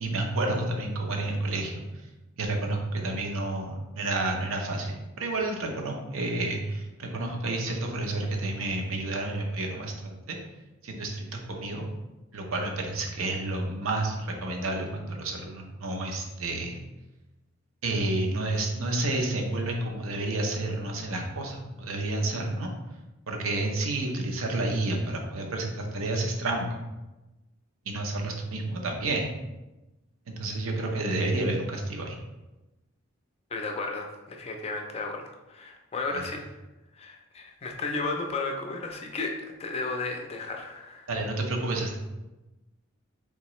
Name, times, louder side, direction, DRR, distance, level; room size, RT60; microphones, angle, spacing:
voice 1, 0.0-1.8 2.4-10.4 10.8-11.8 12.3-16.8 17.8-22.7 23.3-26.8 27.9-29.3 30.3-32.2 41.1-42.0, right 2 dB, 85° right, 1 dB, 0.7 m, -30 dB
voice 2, 33.5-36.4 36.9-41.1, left 3 dB, 30° left, 3 dB, 0.4 m, -34 dB
3.6 x 2.9 x 3.0 m, 1.1 s
head